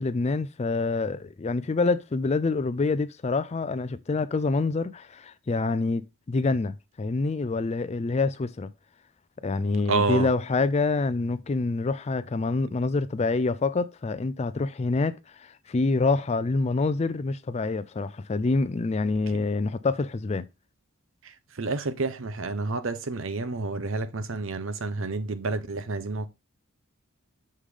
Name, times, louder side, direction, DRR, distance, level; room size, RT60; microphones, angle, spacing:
voice 1, 0.0-8.7 9.4-20.5, left 3 dB, 30° left, 0.4 m, -26 dB
voice 2, 9.9-10.3 21.2-26.3, right 3 dB, 65° right, 0.8 m, -29 dB
6.6 x 3.8 x 4.9 m
head